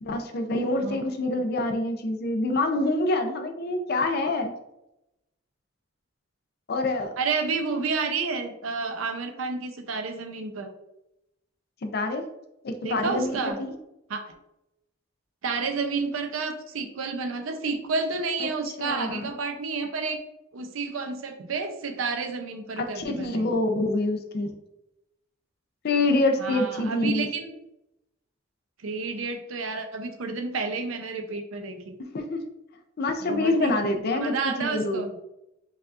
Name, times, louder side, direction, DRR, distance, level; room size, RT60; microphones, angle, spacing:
voice 1, 0.0-4.5 6.7-7.1 11.8-12.2 12.6-13.7 18.4-18.5 18.8-19.3 22.8-24.5 25.8-27.3 32.1-32.4 33.0-35.0, left 2 dB, 50° left, 6 dB, 0.5 m, -26 dB
voice 2, 7.2-10.7 12.8-13.6 14.1-14.2 15.4-20.2 20.5-23.6 26.4-27.5 28.8-32.0 33.3-35.1, right 4 dB, 80° right, 6 dB, 0.6 m, -30 dB
5.4 x 2.4 x 2.4 m, 0.89 s
head